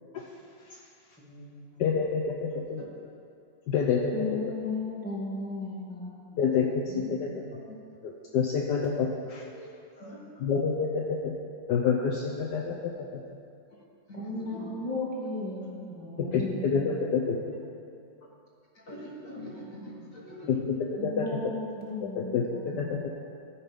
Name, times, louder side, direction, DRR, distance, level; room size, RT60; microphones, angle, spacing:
voice 1, 1.2-1.8 4.1-7.6 14.1-17.6 17.9-18.0 20.4-23.1, left 2 dB, 5° left, -6 dB, 1.9 m, -37 dB
voice 2, 1.8-2.8 3.7-4.1 6.4-7.3 8.0-9.4 10.4-11.3 11.7-13.2 16.2-17.4 21.0-21.2 22.2-23.0, left 6 dB, 70° left, -1 dB, 1.2 m, -28 dB
voice 3, 9.5-10.4 13.7-13.8 14.1-14.6 18.7-20.5, equal, 45° left, -4 dB, 1.6 m, -44 dB
13.5 x 5.9 x 5.2 m, 2.5 s
omnidirectional pair, 2.1 m